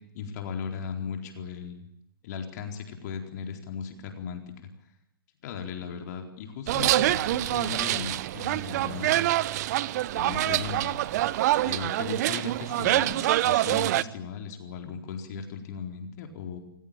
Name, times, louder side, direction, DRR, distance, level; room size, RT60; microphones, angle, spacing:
voice 1, 0.1-1.9 2.2-4.5 5.4-9.2 10.1-10.9 11.6-16.6, left 6 dB, 45° left, 4 dB, 4.3 m, -37 dB
sound 1, 6.7-14.0, right 15 dB, 45° right, 0.8 m, -25 dB
27.5 x 16.5 x 9.0 m, 0.82 s
hypercardioid pair, 125°, 12 cm